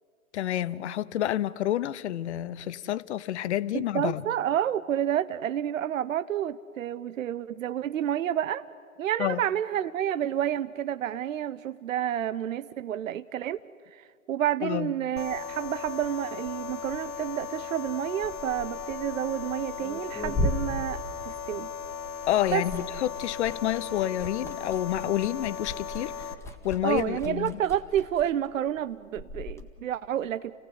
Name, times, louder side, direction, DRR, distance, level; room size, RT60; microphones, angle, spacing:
voice 1, 0.3-4.2 9.2-9.4 14.6-14.9 22.3-26.1 26.6-27.6, left 12 dB, 50° left, 0.9 m, -29 dB
voice 2, 3.7-8.6 9.0-13.6 13.9-21.7 22.5-22.6 26.8-30.5, right 10 dB, 65° right, 0.7 m, -29 dB
sound 1, 15.2-26.3, left 6 dB, 75° left, 1.6 m, -37 dB
Liquid, 18.1-21.8 22.1-29.6, left 1 dB, 5° left, 1.8 m, -37 dB
29.5 x 17.0 x 9.8 m
figure-of-eight pair, 110°, 42 cm